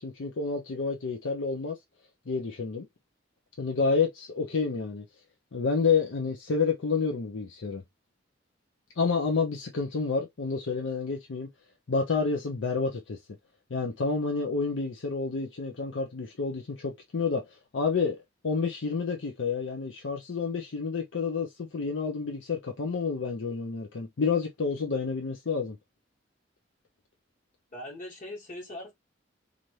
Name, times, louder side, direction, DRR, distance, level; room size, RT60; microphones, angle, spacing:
voice 1, 0.0-1.8 2.3-2.9 3.6-5.1 5.5-7.8 9.0-11.5 11.9-13.2 13.7-18.2 18.4-25.8, left 4 dB, 75° left, 0.6 m, -29 dB
voice 2, 27.7-28.9, left 1 dB, 45° left, 1.3 m, -40 dB
2.7 x 2.5 x 3.1 m
head